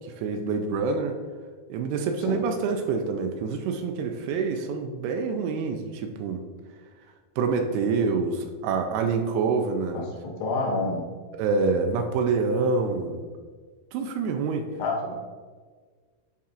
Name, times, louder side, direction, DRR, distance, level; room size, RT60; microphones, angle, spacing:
voice 1, 0.2-1.2 1.7-6.4 7.4-10.1 11.3-13.3 13.9-14.6, right 4 dB, 80° right, 5 dB, 2.5 m, -26 dB
voice 2, 10.4-11.1 14.8-15.1, left 3 dB, 85° left, -1 dB, 3.1 m, -27 dB
11.0 x 4.2 x 2.5 m, 1.5 s
omnidirectional pair, 4.7 m